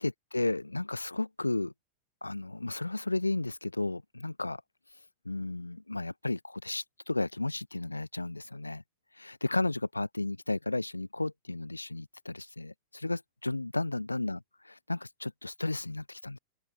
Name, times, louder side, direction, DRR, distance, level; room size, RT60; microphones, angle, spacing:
voice 1, 0.0-1.7 2.2-4.6 5.3-8.8 9.1-16.4, left 2 dB, 85° left, 7.0 m, -33 dB
open air
figure-of-eight pair, 90°, 0 cm